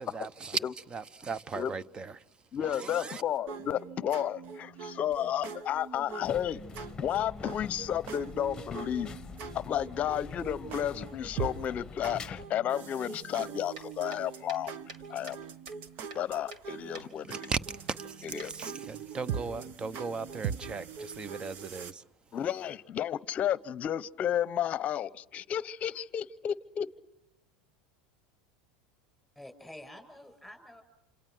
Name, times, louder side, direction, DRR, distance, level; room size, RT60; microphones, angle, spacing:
voice 1, 0.0-3.2 17.2-22.4, right 4 dB, 25° right, 0.8 m, -38 dB
voice 2, 2.5-9.1 9.5-14.7 15.1-15.4 16.1-17.4 18.3-18.5 22.3-26.9, left 10 dB, 40° left, 0.8 m, -32 dB
sound 1, 3.5-21.9, right 6 dB, 50° right, 1.2 m, -42 dB
sound 2, 6.2-12.5, left 6 dB, 15° left, 1.2 m, -45 dB
sound 3, 13.4-15.4 15.7-16.7 16.9-17.1 17.4-17.6 17.9-18.9, right 3 dB, 85° right, 2.7 m, -48 dB
voice 3, 29.4-30.8, left 1 dB, ahead, 6.8 m, -48 dB
28.5 x 27.0 x 6.1 m
supercardioid pair, 110°, 4 cm